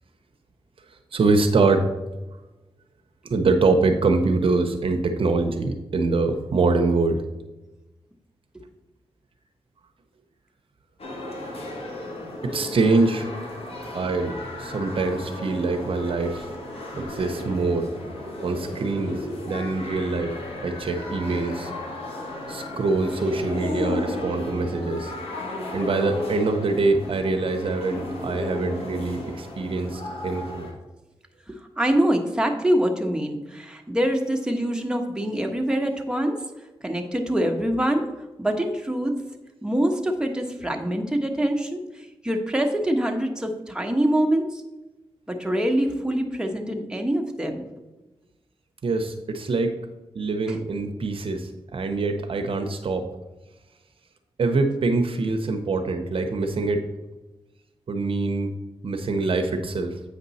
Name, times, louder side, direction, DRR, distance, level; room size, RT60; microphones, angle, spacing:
voice 1, 1.1-1.9 3.2-7.2 12.4-13.3 13.9-16.5 16.9-18.0 18.4-19.2 19.5-20.3 20.6-21.7 22.5-25.1 25.7-30.7 48.8-49.8 50.1-53.1 54.4-56.8 57.9-58.5 58.8-60.0, right 3 dB, 65° right, 5 dB, 0.7 m, -24 dB
sound 1, 11.0-30.7, left 1 dB, 75° left, 1.6 m, -34 dB
voice 2, 31.5-36.4 36.8-38.1 38.4-39.1 39.6-41.8 42.2-44.6 45.3-47.6, right 1 dB, 10° right, 2 dB, 1.2 m, -24 dB
8.2 x 5.3 x 4.1 m, 1.1 s
cardioid pair, 60°, 10 cm